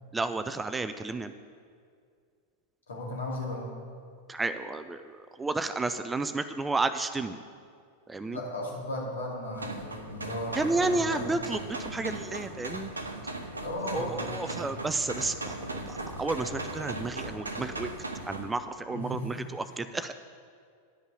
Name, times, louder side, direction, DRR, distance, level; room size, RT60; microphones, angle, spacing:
voice 1, 0.1-1.3 4.3-7.4 8.1-8.4 10.5-12.9 13.9-15.5 15.9-17.9 18.3-20.1, right 3 dB, 10° right, 11 dB, 0.4 m, -31 dB
voice 2, 2.9-3.7 8.3-11.4 13.6-14.9 18.9-19.5, left 1 dB, 70° left, -3 dB, 2.4 m, -36 dB
sound 1, 9.5-18.5, right 2 dB, 80° right, 0.8 m, -38 dB
9.9 x 5.4 x 8.1 m, 2.2 s
figure-of-eight pair, 90°, 0 cm